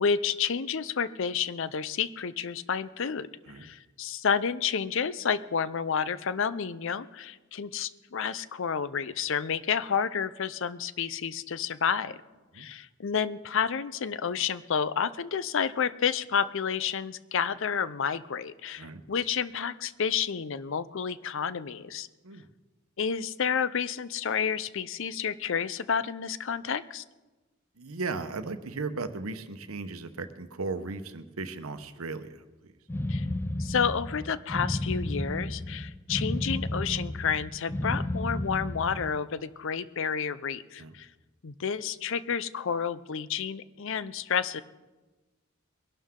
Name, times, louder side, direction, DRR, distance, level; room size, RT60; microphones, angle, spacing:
voice 1, 0.0-3.3 3.6-12.2 12.6-22.1 23.0-27.0 33.1-33.3 33.6-41.1 41.4-44.6, left 7 dB, 65° left, 15 dB, 0.6 m, -30 dB
voice 2, 27.8-32.7 40.8-41.0, right 3 dB, 85° right, 10 dB, 1.0 m, -36 dB
sound 1, 32.9-39.2, left 1 dB, 10° left, 0.4 m, -32 dB
22.0 x 11.5 x 3.7 m, 1.2 s
head